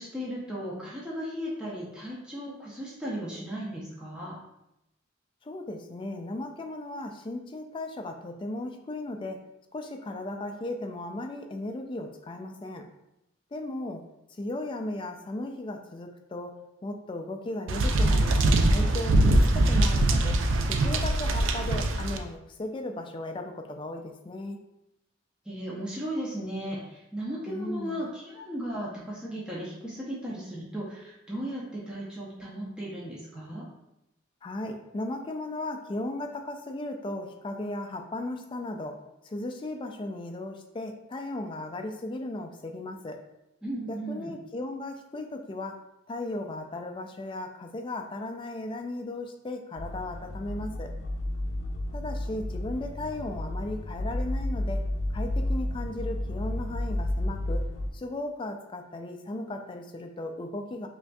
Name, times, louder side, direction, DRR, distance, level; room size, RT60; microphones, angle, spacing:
voice 1, 0.0-4.4 25.4-33.7 43.6-44.3, equal, 5° right, -7 dB, 0.7 m, -36 dB
voice 2, 5.4-9.5 9.7-12.9 13.5-14.0 14.3-18.4 18.7-20.4 20.7-24.6 27.5-28.1 34.4-43.2 43.9-45.8 46.1-50.9 51.9-54.8 55.1-60.9, left 2 dB, 25° left, 4 dB, 0.3 m, -36 dB
sound 1, 17.7-22.2, right 1 dB, 70° right, 0.4 m, -22 dB
sound 2, 49.8-57.9, left 1 dB, 75° left, 0.5 m, -31 dB
5.7 x 2.6 x 2.3 m, 0.87 s
head